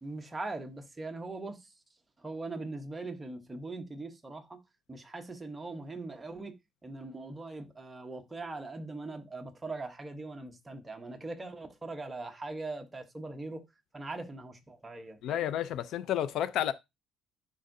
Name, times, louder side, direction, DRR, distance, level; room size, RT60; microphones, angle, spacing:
voice 1, 0.0-1.6 2.2-4.6 4.9-6.6 6.8-13.6 13.9-15.5, right 2 dB, 10° right, 0.9 m, -41 dB
voice 2, 15.2-16.7, left 11 dB, 60° left, 0.4 m, -31 dB
10.5 x 3.7 x 2.6 m
cardioid pair, 160°, 0 cm